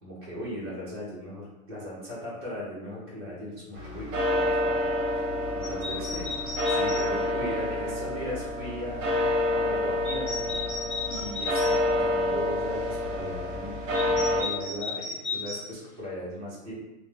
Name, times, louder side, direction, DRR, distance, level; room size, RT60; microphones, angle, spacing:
voice 1, 0.0-6.3 6.7-10.3 11.1-16.7, equal, 20° right, -9 dB, 0.5 m, -38 dB
sound 1, 3.7-14.4, left 1 dB, 60° right, 0.6 m, -28 dB
sound 2, 5.6-7.1 10.0-11.7 13.9-15.6, left 4 dB, 35° left, 0.8 m, -34 dB
2.1 x 2.0 x 3.5 m, 0.99 s
supercardioid pair, 175°, 45 cm